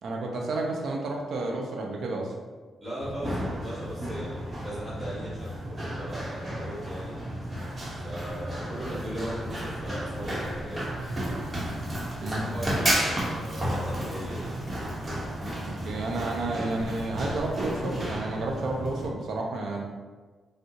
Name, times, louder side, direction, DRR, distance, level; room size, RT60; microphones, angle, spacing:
voice 1, 0.0-2.3 12.2-12.4 15.7-19.8, right 2 dB, 70° right, 0 dB, 0.5 m, -31 dB
voice 2, 2.8-7.1 8.0-11.3 12.2-14.6, equal, 15° right, -7 dB, 1.2 m, -38 dB
Run, 3.0-19.1, right 1 dB, 30° right, 0.9 m, -32 dB
3.6 x 2.0 x 2.7 m, 1.3 s
cardioid pair, 70°, 0 cm